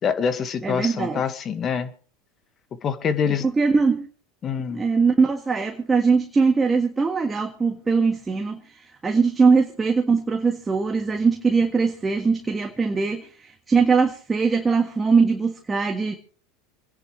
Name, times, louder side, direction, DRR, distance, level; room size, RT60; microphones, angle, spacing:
voice 1, 0.0-1.9 2.8-3.5 4.4-4.8, left 7 dB, 35° left, 1.8 m, -25 dB
voice 2, 0.6-1.2 3.3-4.1 4.7-8.6 9.0-16.2, right 4 dB, 20° right, 1.6 m, -21 dB
27.5 x 10.5 x 3.3 m
supercardioid pair, 110°, 0 cm